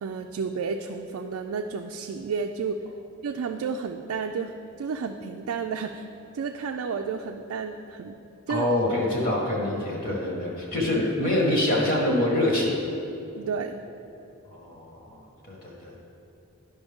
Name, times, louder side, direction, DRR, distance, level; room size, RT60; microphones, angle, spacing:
voice 1, 0.0-2.8 3.2-6.1 6.3-8.2 8.5-8.7 13.4-13.8, right 5 dB, 80° right, 3 dB, 0.4 m, -31 dB
voice 2, 8.5-12.8 14.5-16.0, left 1 dB, 40° left, -3 dB, 1.5 m, -25 dB
11.0 x 5.4 x 3.6 m, 2.8 s
head